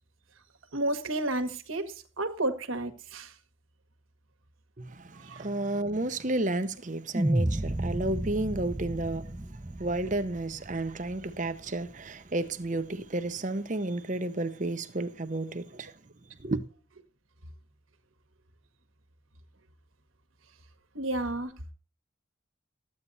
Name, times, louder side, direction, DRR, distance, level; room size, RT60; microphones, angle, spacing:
voice 1, 0.7-3.3 5.2-5.5 20.9-21.6, right 2 dB, 85° right, 1.6 m, -31 dB
voice 2, 4.8-15.9 16.4-16.6, right 2 dB, 40° right, 0.8 m, -32 dB
sound 1, 7.1-11.5, right 1 dB, 15° right, 0.5 m, -31 dB
13.5 x 8.7 x 4.1 m
head